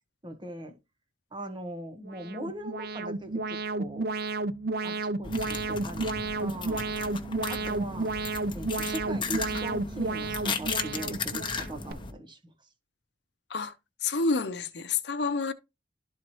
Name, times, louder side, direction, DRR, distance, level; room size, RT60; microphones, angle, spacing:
voice 1, 0.2-0.7 1.3-4.1 4.8-6.1 6.4-6.8 7.5-8.1 8.5-12.4, right 1 dB, 25° right, 1.2 m, -40 dB
Alarm, 2.0-11.9, right 3 dB, 55° right, 0.6 m, -32 dB
sound 1, 5.2-12.1, left 5 dB, 25° left, 1.0 m, -36 dB
voice 2, 14.0-15.5, left 4 dB, 65° left, 0.7 m, -28 dB
12.5 x 4.4 x 3.1 m
head